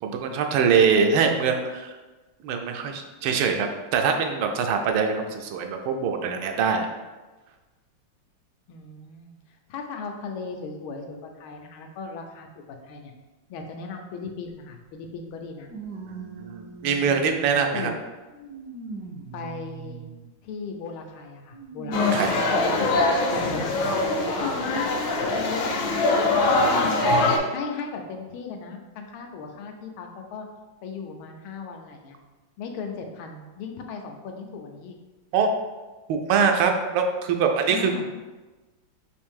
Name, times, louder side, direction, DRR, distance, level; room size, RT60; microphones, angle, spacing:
voice 1, 0.0-1.9 2.4-6.9 16.1-17.9 21.9-22.4 26.2-26.3 35.3-35.5 36.1-38.1, right 6 dB, 85° right, 4 dB, 1.4 m, -23 dB
voice 2, 8.7-9.4 9.7-13.1 13.5-15.7 17.7-17.9 19.3-20.1 20.4-22.3 22.6-24.0 24.4-25.7 26.2-27.1 27.5-30.5 30.8-32.2 32.6-34.9 37.7-38.1, left 5 dB, 85° left, 3 dB, 1.4 m, -36 dB
sound 1, 14.5-14.6 15.7-17.7 18.3-20.3 21.5-22.9 23.6-23.7 24.9-25.0, right 4 dB, 70° right, 1.0 m, -40 dB
sound 2, 21.9-27.4, left 2 dB, 70° left, 1.3 m, -23 dB
4.9 x 2.6 x 3.5 m, 1.2 s
omnidirectional pair, 2.2 m